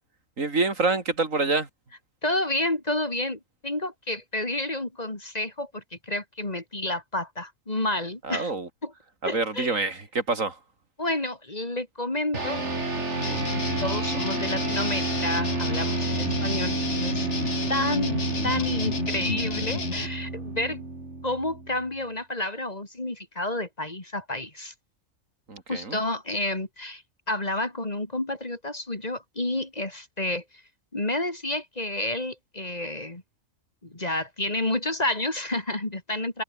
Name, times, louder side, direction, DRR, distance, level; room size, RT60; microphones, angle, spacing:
voice 1, 0.4-1.7 8.3-8.7 9.2-10.6 25.5-26.0, right 3 dB, 80° right, 3.7 m, -26 dB
voice 2, 2.2-8.5 8.8-8.9 9.2-9.9 11.0-12.7 13.2-13.3 13.8-17.3 17.7-20.8 21.2-24.7 25.7-27.0 27.3-30.4 30.9-33.2 33.8-36.4, left 1 dB, 30° left, 2.9 m, -30 dB
sound 1, 12.3-22.0, right 2 dB, 60° right, 4.1 m, -30 dB
sound 2, 13.2-20.1, left 4 dB, 60° left, 2.3 m, -32 dB
omnidirectional pair, 1.3 m